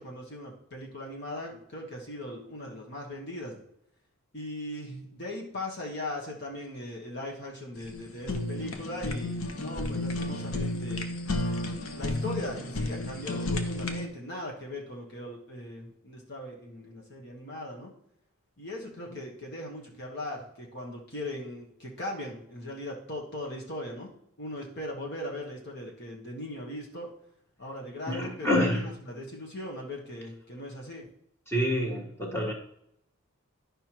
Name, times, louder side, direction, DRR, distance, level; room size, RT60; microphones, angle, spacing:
voice 1, 0.0-3.6 4.3-11.1 11.7-17.9 18.6-24.1 24.4-27.1 27.6-31.1, left 1 dB, 50° left, -2 dB, 1.4 m, -39 dB
Fire, 7.8-14.1, left 2 dB, 80° left, 1.0 m, -32 dB
voice 2, 28.1-28.8 31.5-32.5, left 1 dB, 10° left, -1 dB, 1.4 m, -27 dB
11.5 x 5.5 x 3.0 m, 0.74 s
head